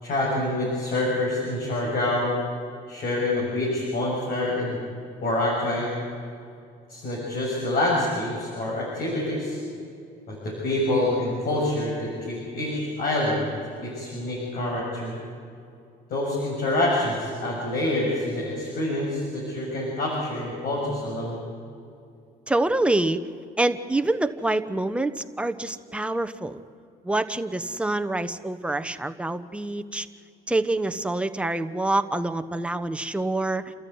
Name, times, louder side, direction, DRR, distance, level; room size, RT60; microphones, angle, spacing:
voice 1, 0.0-2.3 2.9-4.8 5.2-6.0 6.9-9.6 10.3-13.5 13.8-15.1 16.1-21.4, left 1 dB, 60° left, -4 dB, 6.9 m, -26 dB
voice 2, 22.5-23.2 23.6-26.6 27.0-30.1 30.5-33.7, right 2 dB, 5° right, 9 dB, 1.1 m, -26 dB
28.5 x 14.0 x 9.4 m, 2.5 s
cardioid pair, 110°, 17 cm